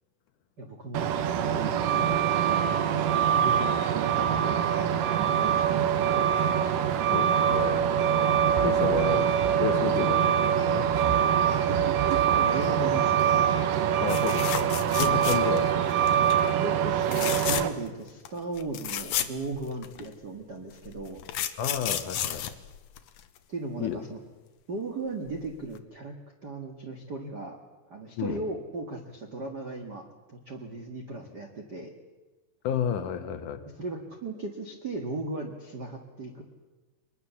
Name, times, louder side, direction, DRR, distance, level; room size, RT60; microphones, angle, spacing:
voice 1, 0.6-6.5 8.9-9.0 11.6-13.4 16.2-16.3 16.6-21.2 23.5-24.2 24.7-26.2 26.4-27.6 27.9-30.0 30.3-31.9 33.8-36.4, right 2 dB, 45° right, 2 dB, 1.3 m, -37 dB
Truck, 0.9-17.7, right 9 dB, 70° right, 2.2 m, -24 dB
voice 2, 7.1-7.9 8.6-9.3 9.6-10.9 14.0-16.1 21.6-22.5 23.8-24.0 28.2-28.4 32.6-33.6, left 8 dB, 65° left, 8 dB, 2.1 m, -31 dB
sound 1, 14.1-15.7 16.1-16.4 17.0-17.9 18.3-18.4 18.6-20.1 20.8-23.4 25.3-25.5 25.8-25.9, left 11 dB, 85° left, 1.6 m, -32 dB
24.0 x 21.0 x 7.1 m, 1.2 s
omnidirectional pair, 4.9 m